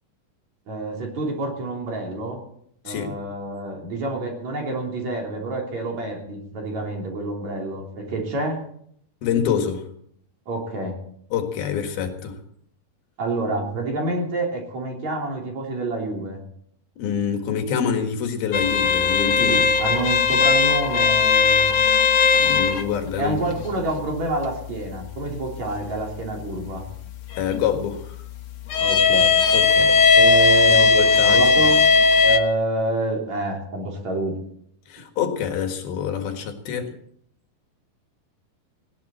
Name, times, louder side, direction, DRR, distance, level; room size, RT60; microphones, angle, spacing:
voice 1, 0.7-2.4 2.8-8.6 10.5-11.0 13.2-16.4 19.5-21.7 23.2-26.9 28.8-29.3 30.1-31.9 32.2-34.3, right 2 dB, 45° right, 0 dB, 4.2 m, -28 dB
voice 2, 2.9-3.2 9.2-9.8 11.3-12.4 17.0-19.6 22.4-23.4 27.4-28.2 29.5-30.0 30.8-31.4 34.9-36.9, left 7 dB, 75° left, 5 dB, 3.6 m, -26 dB
sound 1, 18.5-32.4, left 5 dB, 55° left, 1.9 m, -19 dB
19.5 x 17.0 x 4.3 m, 0.67 s
omnidirectional pair, 4.5 m